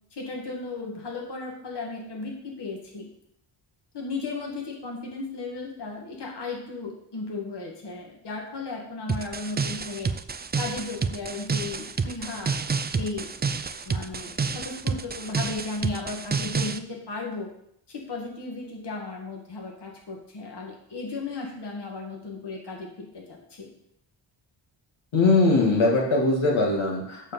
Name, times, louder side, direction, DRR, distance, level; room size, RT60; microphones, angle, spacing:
voice 1, 0.1-3.1 3.9-10.1 10.6-12.6 13.0-13.3 13.8-17.5 17.9-23.7, left 3 dB, 55° left, -1 dB, 2.2 m, -35 dB
sound 1, 9.1-16.8, right 5 dB, 20° right, 0.4 m, -29 dB
voice 2, 25.1-27.3, left 3 dB, 70° left, -2 dB, 2.2 m, -21 dB
8.8 x 4.5 x 7.1 m, 0.71 s
cardioid pair, 95°, 49 cm